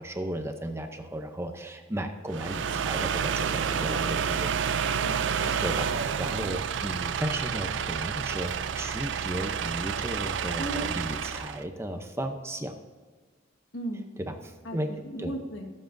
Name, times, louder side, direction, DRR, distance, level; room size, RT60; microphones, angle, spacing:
voice 1, 0.0-4.6 5.3-12.7 14.2-14.9 15.2-15.3, right 1 dB, 15° right, 6 dB, 0.6 m, -35 dB
sound 1, 2.3-11.6, right 7 dB, 70° right, 0.4 m, -29 dB
voice 2, 5.0-5.6 10.6-10.8 13.7-14.1 14.6-15.7, right 1 dB, 75° left, 3 dB, 1.6 m, -36 dB
22.5 x 7.5 x 2.6 m, 1.5 s
head